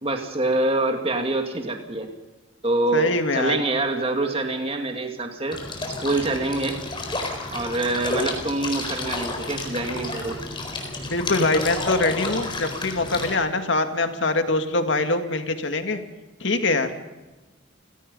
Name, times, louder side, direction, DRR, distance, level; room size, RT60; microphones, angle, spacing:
voice 1, 0.0-2.1 2.6-5.6 6.0-6.8 7.5-10.4, right 2 dB, 30° right, 4 dB, 2.3 m, -25 dB
voice 2, 2.9-3.6 11.1-16.0 16.4-16.9, left 2 dB, 65° left, 7 dB, 2.1 m, -23 dB
sound 1, 5.5-13.3, left 2 dB, 25° left, 4.3 m, -31 dB
30.0 x 17.0 x 5.5 m, 1.2 s
head